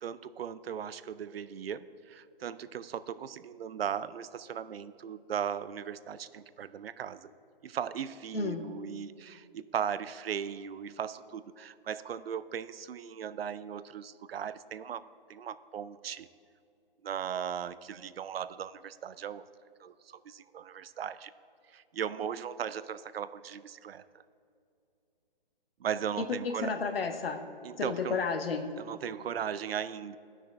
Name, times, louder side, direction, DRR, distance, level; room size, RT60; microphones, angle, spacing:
voice 1, 0.0-7.3 7.6-16.3 17.0-19.5 19.8-21.3 21.7-24.0 25.8-26.7 27.6-28.2 28.8-30.2, right 8 dB, 90° right, 15 dB, 0.5 m, -37 dB
voice 2, 26.2-27.4 27.8-28.7, left 5 dB, 75° left, 8 dB, 0.9 m, -32 dB
14.0 x 6.0 x 3.3 m, 2.5 s
hypercardioid pair, 170°, 29 cm